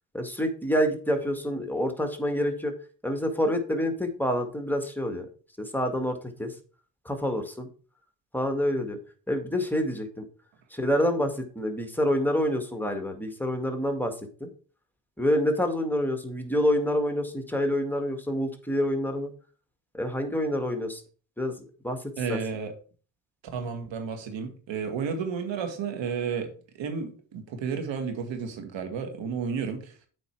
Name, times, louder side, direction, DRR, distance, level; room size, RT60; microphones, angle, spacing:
voice 1, 0.1-2.7 3.0-5.3 5.6-6.5 7.1-7.7 8.3-9.0 9.3-10.2 10.7-14.1 14.4-14.5 15.2-19.3 19.9-21.0 21.4-21.5 21.8-22.0 22.3-22.4, equal, 5° left, 1.8 m, -27 dB
voice 2, 22.2-22.7 23.5-26.5 26.8-30.0, right 6 dB, 80° right, 2.1 m, -32 dB
8.1 x 5.2 x 4.6 m
cardioid pair, 70°, 45 cm